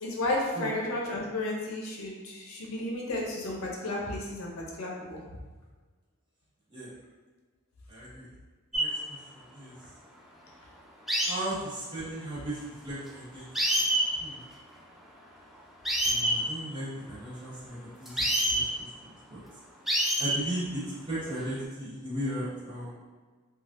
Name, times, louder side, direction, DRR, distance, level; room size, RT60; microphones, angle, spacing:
voice 1, 0.0-5.2, left 2 dB, 75° left, -2 dB, 0.6 m, -33 dB
voice 2, 7.9-8.3 8.7-9.7 11.2-13.5 14.2-14.4 16.0-19.4 20.2-23.0, right 1 dB, 20° right, -11 dB, 1.2 m, -37 dB
sound 1, 8.7-8.9 11.1-11.3 13.1-13.2 13.5-14.1 15.8-16.4 18.1-18.6 19.9-20.4 21.3-21.6, right 1 dB, ahead, 0.3 m, -26 dB
3.2 x 2.3 x 2.5 m, 1.3 s
head